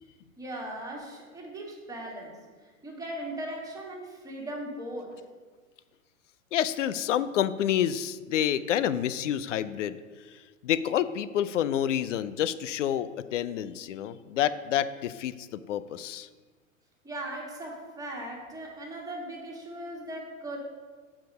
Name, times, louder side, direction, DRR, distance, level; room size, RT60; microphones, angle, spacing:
voice 1, 0.4-5.1 17.0-20.6, right 1 dB, 10° right, -2 dB, 1.7 m, -38 dB
voice 2, 6.5-10.0 10.6-16.3, left 10 dB, 65° left, 15 dB, 0.5 m, -28 dB
7.4 x 4.9 x 5.3 m, 1.4 s
figure-of-eight pair, 100°, 41 cm